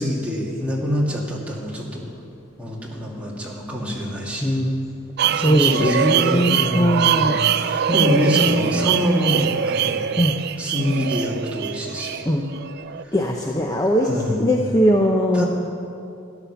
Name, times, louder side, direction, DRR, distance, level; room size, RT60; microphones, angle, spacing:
voice 1, 0.0-2.0 2.6-4.5 5.2-10.2 10.6-12.2 13.0-13.2 14.0-14.4 15.3-15.5, equal, 5° right, -4 dB, 2.1 m, -25 dB
voice 2, 4.4-4.9 5.4-7.4 7.9-9.0 10.2-10.3 12.3-12.4 13.1-14.1 14.4-15.4, equal, 15° left, 0 dB, 0.7 m, -20 dB
sound 1, 5.2-13.0, right 8 dB, 50° right, 0.4 m, -23 dB
13.0 x 11.0 x 7.0 m, 2.6 s
head